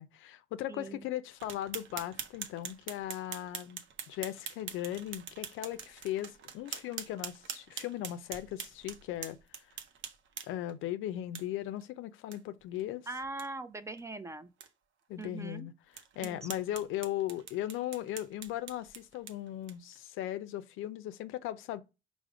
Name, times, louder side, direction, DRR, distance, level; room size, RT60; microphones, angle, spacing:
voice 1, 0.0-9.6 10.5-13.1 15.1-15.7 16.2-21.8, left 13 dB, 85° left, 0.4 m, -38 dB
voice 2, 0.7-1.1 13.1-14.5 15.2-15.7 16.2-16.6, right 3 dB, 15° right, 0.4 m, -41 dB
sound 1, 1.4-10.7 11.3-11.4 11.8-11.9 12.3-12.4 12.8-12.9 13.2-13.5 14.0-14.1 14.6-14.7 15.2-15.3 15.9-20.0, right 8 dB, 75° right, 0.6 m, -44 dB
4.9 x 2.0 x 4.7 m
cardioid pair, 90°, 20 cm